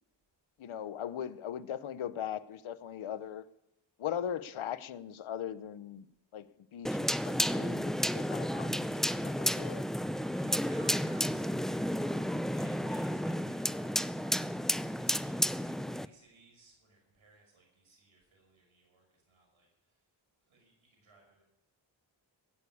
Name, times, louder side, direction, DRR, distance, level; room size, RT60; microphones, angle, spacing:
voice 1, 0.6-3.5 4.0-6.1 6.3-9.8, left 9 dB, 85° left, 14 dB, 0.8 m, -39 dB
sound 1, 6.8-16.0, equal, ahead, 0.6 m, -32 dB
voice 2, 10.3-14.5 14.9-20.0 20.5-21.4, right 3 dB, 85° right, 0 dB, 6.2 m, -60 dB
16.5 x 8.5 x 9.8 m, 0.87 s
cardioid pair, 60°, 47 cm